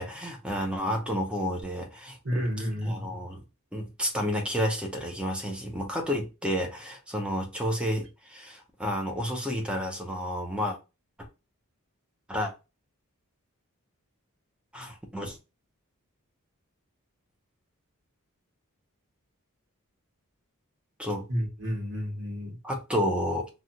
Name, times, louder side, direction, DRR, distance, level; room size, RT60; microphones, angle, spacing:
voice 1, 0.0-3.4 3.7-10.8 12.3-12.5 14.7-15.4 21.0-21.3 22.6-23.5, equal, 5° right, 0.7 m, -31 dB
voice 2, 2.2-3.2 21.3-22.6, equal, 55° right, 1.6 m, -31 dB
3.2 x 2.5 x 2.7 m
head